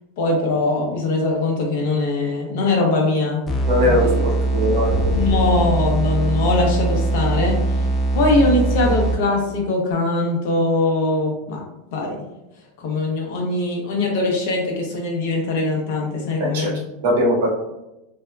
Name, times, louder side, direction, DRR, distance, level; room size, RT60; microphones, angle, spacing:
voice 1, 0.2-3.5 3.8-4.2 5.1-7.8 8.1-11.6 11.9-12.2 12.8-16.8, left 2 dB, 65° left, 0 dB, 0.8 m, -21 dB
sound 1, 3.5-9.5, right 2 dB, 25° left, 0.4 m, -21 dB
voice 2, 3.7-5.2 16.4-16.7 17.0-17.5, equal, 75° right, -2 dB, 1.0 m, -20 dB
sound 2, 4.8-9.9, left 2 dB, 5° right, 0.9 m, -34 dB
2.8 x 2.1 x 2.3 m, 0.91 s
hypercardioid pair, 120°, 0 cm